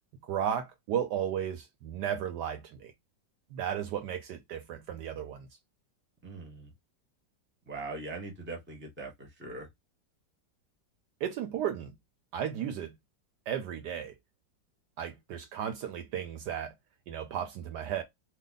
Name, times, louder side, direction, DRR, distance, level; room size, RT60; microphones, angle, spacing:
voice 1, 0.2-2.9 3.5-5.5 11.2-12.0 12.3-13.0 13.5-14.1 15.0-16.7 17.1-18.0, right 9 dB, 70° right, 1.1 m, -34 dB
voice 2, 6.2-6.7 7.7-9.7, right 3 dB, 10° right, 0.8 m, -41 dB
3.2 x 2.1 x 3.8 m
omnidirectional pair, 2.0 m